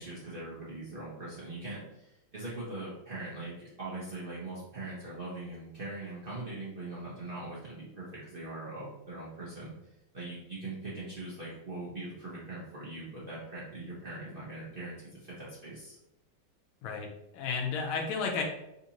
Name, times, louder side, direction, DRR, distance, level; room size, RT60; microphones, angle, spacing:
voice 1, 0.0-16.0, right 2 dB, 45° right, -8 dB, 0.7 m, -41 dB
voice 2, 16.8-18.4, left 5 dB, 90° left, 1 dB, 1.6 m, -33 dB
4.1 x 2.6 x 2.8 m, 0.87 s
omnidirectional pair, 2.2 m